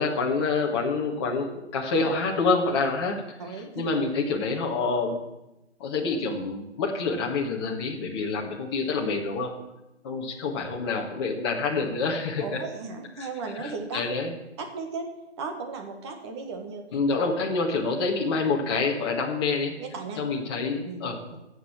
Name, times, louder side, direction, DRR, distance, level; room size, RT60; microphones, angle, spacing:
voice 1, 0.0-3.2 3.7-5.2 5.8-9.5 10.0-12.6 13.2-13.3 13.6-14.3 16.9-19.8 20.2-21.2, left 4 dB, 25° left, 0 dB, 1.7 m, -27 dB
voice 2, 3.4-3.9 12.4-14.0 14.6-15.1 15.4-16.8 19.8-20.2 20.8-21.1, right 4 dB, 25° right, 4 dB, 1.7 m, -35 dB
16.0 x 6.8 x 7.3 m, 0.95 s
hypercardioid pair, 160°, 34 cm